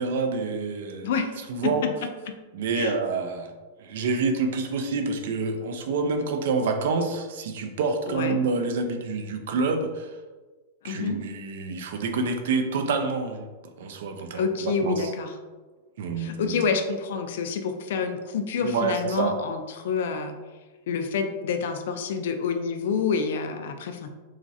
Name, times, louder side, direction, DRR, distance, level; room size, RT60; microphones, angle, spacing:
voice 1, 0.0-1.1 1.5-1.9 2.5-3.5 3.8-10.2 10.8-15.1 16.0-16.6 18.6-19.4, right 4 dB, 65° right, 6 dB, 0.4 m, -27 dB
voice 2, 1.0-1.7 2.8-3.0 8.1-8.4 10.8-11.2 14.3-15.3 16.2-20.3 20.9-24.2, left 5 dB, 60° left, 6 dB, 0.3 m, -28 dB
3.0 x 2.4 x 2.6 m, 1.3 s
supercardioid pair, 175°, 0 cm